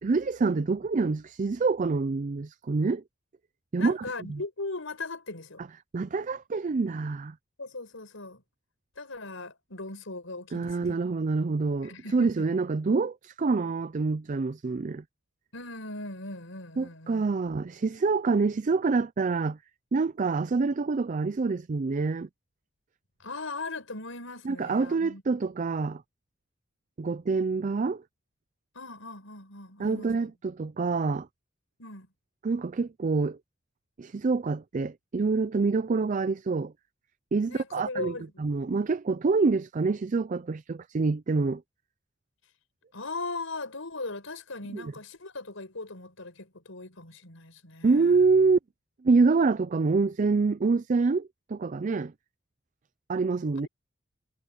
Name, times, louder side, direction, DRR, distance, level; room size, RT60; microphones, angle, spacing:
voice 1, 0.0-3.0 3.7-4.4 5.9-7.3 10.5-15.0 16.8-19.6 19.9-22.3 24.5-26.0 27.0-28.0 29.8-31.3 32.4-33.4 34.0-36.7 37.3-38.1 38.4-41.6 44.7-44.9 47.8-48.6 49.0-52.1 53.1-53.7, right 4 dB, 40° right, 0.4 m, -26 dB
voice 2, 3.8-5.6 7.6-8.4 9.0-11.0 11.8-12.6 15.5-17.3 23.2-25.2 28.7-30.3 31.8-32.1 37.5-38.4 42.9-48.2 53.6-53.7, left 3 dB, 90° left, 5.2 m, -39 dB
head